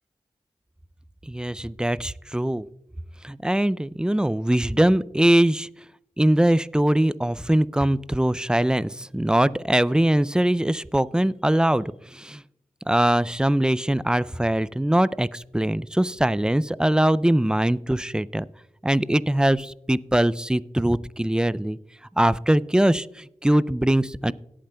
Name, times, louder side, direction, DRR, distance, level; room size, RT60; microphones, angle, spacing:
voice 1, 1.3-2.7 3.2-5.7 6.2-12.4 12.9-18.4 18.8-21.8 22.2-24.3, right 1 dB, 5° right, 18 dB, 0.3 m, -22 dB
18.0 x 8.8 x 2.2 m, 0.79 s
cardioid pair, 55°, 12 cm